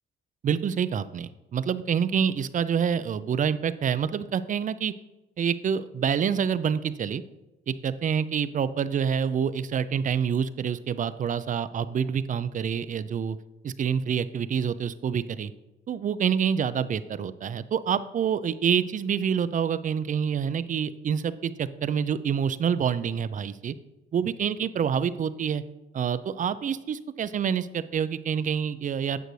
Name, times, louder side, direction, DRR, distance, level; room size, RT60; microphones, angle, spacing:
voice 1, 0.4-4.9 5.4-7.2 7.7-13.4 13.6-15.5 15.9-23.7 24.1-25.6 25.9-29.2, right 7 dB, 40° right, 14 dB, 0.4 m, -27 dB
9.0 x 6.5 x 3.2 m, 1.0 s
cardioid pair, 90°, 20 cm